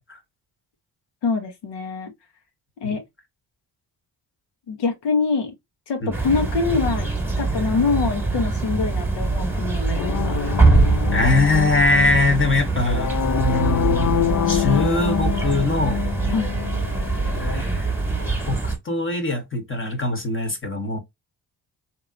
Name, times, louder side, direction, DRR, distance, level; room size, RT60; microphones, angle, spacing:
voice 1, 1.2-2.1 2.8-3.0 4.7-5.5 5.9-7.1 7.4-10.4 16.3-16.5, left 4 dB, 85° left, 1.3 m, -24 dB
sound 1, 6.1-18.8, right 3 dB, 5° right, 1.3 m, -23 dB
sound 2, 9.9-17.6, left 11 dB, 50° left, 0.5 m, -26 dB
voice 2, 11.1-13.1 13.4-16.0 17.2-21.0, left 2 dB, 30° left, 1.1 m, -22 dB
3.0 x 2.9 x 2.5 m
cardioid pair, 70°, 40 cm